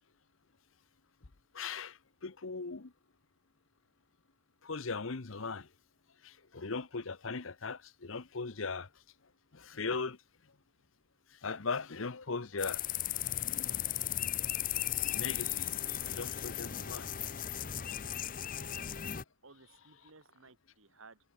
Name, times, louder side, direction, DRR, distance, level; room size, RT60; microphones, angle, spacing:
voice 1, 1.5-2.9 4.6-5.7 6.2-8.9 9.5-10.2 11.4-12.8 15.1-15.7 16.1-17.1, left 4 dB, 80° left, 1.0 m, -38 dB
sound 1, 12.6-19.2, left 11 dB, 40° left, 0.6 m, -36 dB
voice 2, 18.6-18.9 19.4-21.2, right 3 dB, 80° right, 2.8 m, -58 dB
head